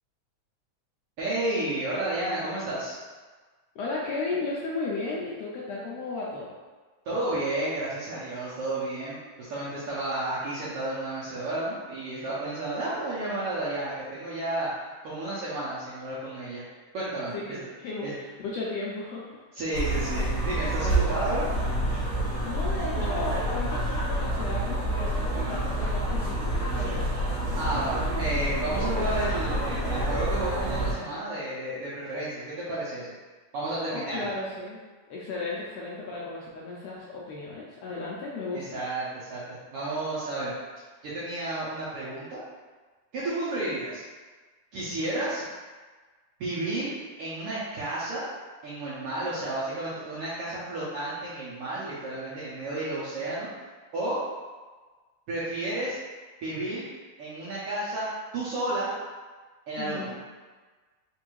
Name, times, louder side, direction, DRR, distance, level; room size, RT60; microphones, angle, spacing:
voice 1, 1.2-3.0 7.1-14.7 15.0-16.6 16.9-17.6 18.0-18.1 19.5-21.5 27.6-33.1 33.5-34.3 38.5-40.5 41.0-42.4 43.1-44.0 44.7-45.4 46.4-46.9 47.2-48.2 48.6-53.5 53.9-54.2 55.3-56.0 56.4-56.9 57.2-58.1 58.3-58.9 59.7-60.1, right 2 dB, 75° right, -9 dB, 1.4 m, -31 dB
voice 2, 3.7-6.5 17.3-19.4 22.4-27.2 33.9-34.8 35.1-38.8 59.8-60.2, left 3 dB, 80° left, -4 dB, 1.5 m, -35 dB
sound 1, 19.7-30.9, right 1 dB, 55° left, 0.9 m, -28 dB
4.5 x 2.5 x 3.0 m, 1.3 s
omnidirectional pair, 3.3 m